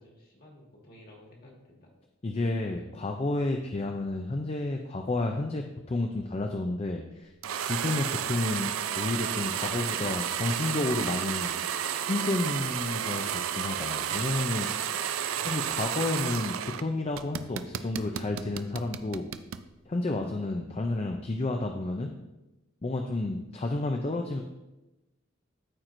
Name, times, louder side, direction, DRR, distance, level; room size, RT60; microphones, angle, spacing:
voice 1, 0.0-1.9 15.3-15.7 17.5-17.6, left 1 dB, 45° left, -2 dB, 1.8 m, -53 dB
voice 2, 2.2-7.3 7.6-11.5 12.0-14.7 15.4-19.3 19.9-22.1 22.8-24.4, left 2 dB, 30° left, 3 dB, 0.4 m, -31 dB
sound 1, 7.4-16.8 17.1-19.6, right 9 dB, 90° right, 0.4 m, -32 dB
13.0 x 4.5 x 2.6 m, 0.99 s
head